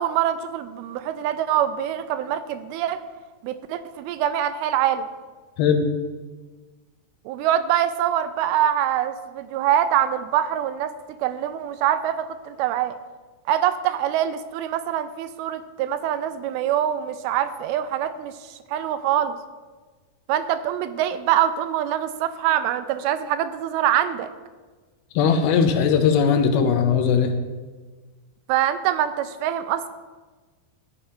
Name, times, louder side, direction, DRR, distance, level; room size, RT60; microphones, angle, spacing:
voice 1, 0.0-3.0 3.4-5.1 7.3-10.9 11.2-13.0 13.5-19.4 20.3-24.3 28.5-29.9, right 11 dB, 85° right, 11 dB, 2.4 m, -24 dB
voice 2, 25.2-27.3, left 6 dB, 80° left, 6 dB, 2.7 m, -19 dB
14.0 x 5.0 x 4.4 m, 1.3 s
omnidirectional pair, 4.4 m